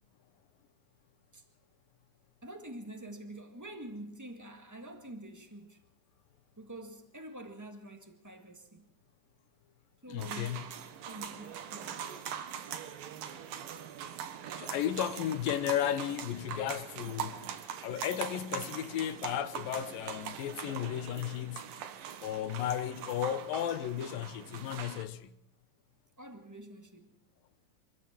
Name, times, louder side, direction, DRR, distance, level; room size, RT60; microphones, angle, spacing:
voice 1, 2.4-5.8 6.6-8.9 10.0-12.1 26.2-27.1, right 1 dB, 15° right, 0.5 m, -47 dB
voice 2, 10.1-10.6 14.6-17.4 17.8-21.6 22.2-25.3, left 11 dB, 90° left, 2.8 m, -34 dB
sound 1, 10.2-25.0, right 9 dB, 90° right, 3.1 m, -42 dB
25.5 x 15.0 x 7.4 m
omnidirectional pair, 3.9 m